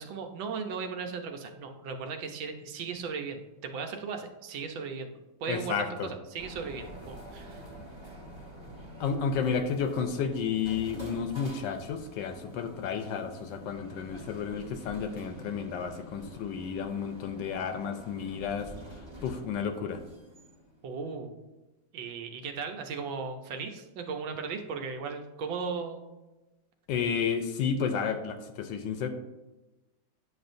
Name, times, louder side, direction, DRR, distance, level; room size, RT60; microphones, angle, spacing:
voice 1, 0.0-5.1 5.4-7.7 20.8-21.3 21.9-26.1, right 5 dB, 80° right, 5 dB, 1.5 m, -37 dB
voice 2, 5.5-6.1 9.0-18.7 19.2-20.0 26.9-29.1, left 6 dB, 75° left, 8 dB, 1.2 m, -31 dB
sound 1, 6.4-21.0, equal, 20° right, 0.7 m, -47 dB
9.4 x 6.2 x 2.6 m, 1.1 s
omnidirectional pair, 2.1 m